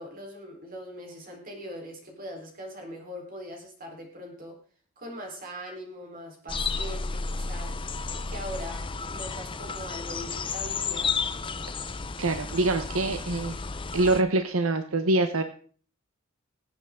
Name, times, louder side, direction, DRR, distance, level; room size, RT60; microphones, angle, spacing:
voice 1, 0.0-4.6 5.0-7.7 8.1-11.1, equal, 45° right, 2 dB, 4.1 m, -41 dB
sound 1, 6.5-14.2, left 4 dB, 25° left, 0.6 m, -32 dB
voice 2, 12.2-13.6 13.9-15.4, right 2 dB, 85° right, 8 dB, 0.9 m, -25 dB
22.5 x 8.2 x 3.8 m, 0.43 s
head